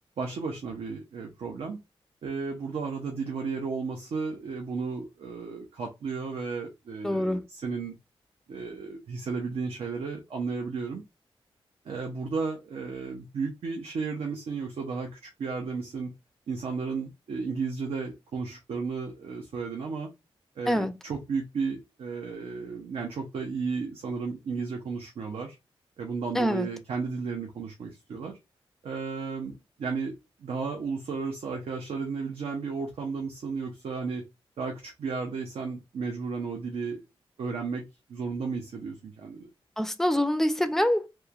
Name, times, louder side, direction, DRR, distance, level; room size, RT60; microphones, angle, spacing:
voice 1, 0.2-1.8 2.2-7.9 8.5-11.0 11.8-16.1 16.5-20.1 20.6-25.6 26.0-28.4 28.8-34.3 34.6-37.0 37.4-39.5, right 4 dB, 85° right, 0.5 m, -33 dB
voice 2, 7.0-7.4 20.7-20.9 26.3-26.7 39.8-41.1, left 1 dB, 5° left, 0.4 m, -25 dB
3.0 x 2.2 x 2.3 m
cardioid pair, 75°, 10 cm